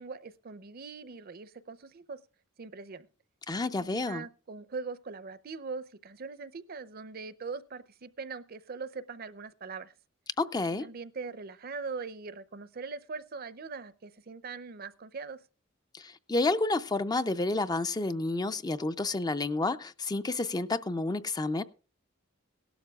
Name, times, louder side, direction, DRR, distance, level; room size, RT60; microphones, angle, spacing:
voice 1, 0.0-2.2 2.6-3.1 3.8-9.9 10.7-15.4, right 4 dB, 50° right, 0.6 m, -41 dB
voice 2, 3.5-4.3 10.4-10.9 15.9-21.6, left 2 dB, 20° left, 0.5 m, -30 dB
17.5 x 12.0 x 2.4 m
head